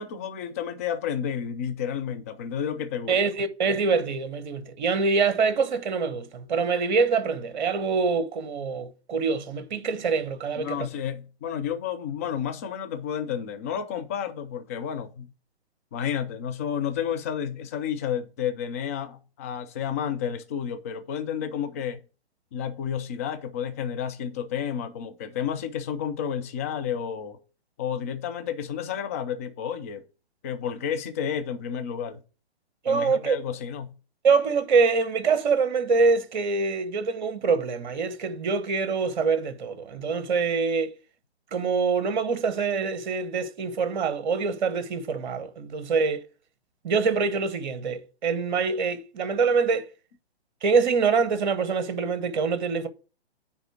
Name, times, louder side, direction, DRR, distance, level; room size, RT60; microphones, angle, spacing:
voice 1, 0.0-3.2 10.6-15.3 15.9-22.0 22.5-27.4 27.8-30.0 30.4-32.2 32.9-33.9, left 8 dB, 15° left, 0.4 m, -31 dB
voice 2, 3.1-10.9 32.8-33.4 34.2-40.9 41.5-46.2 46.8-49.9 50.6-52.9, right 5 dB, 45° right, 1.0 m, -25 dB
9.5 x 3.6 x 6.1 m
figure-of-eight pair, 125°, 33 cm